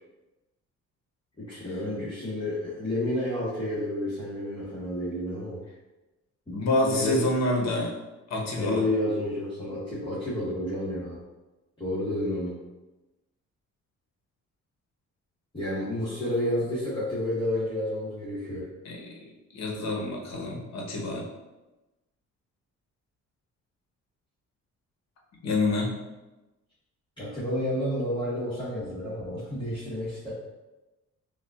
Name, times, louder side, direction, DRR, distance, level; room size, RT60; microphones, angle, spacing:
voice 1, 1.4-5.6 6.5-7.1 8.5-11.2 11.8-12.6 15.5-18.6 27.2-30.3, left 1 dB, 15° left, -11 dB, 1.3 m, -30 dB
voice 2, 6.5-8.0 8.3-8.8 18.8-19.1 19.5-21.3 25.4-26.0, left 2 dB, 60° left, -1 dB, 1.0 m, -27 dB
5.3 x 2.4 x 2.4 m, 1.1 s
cardioid pair, 90°, 30 cm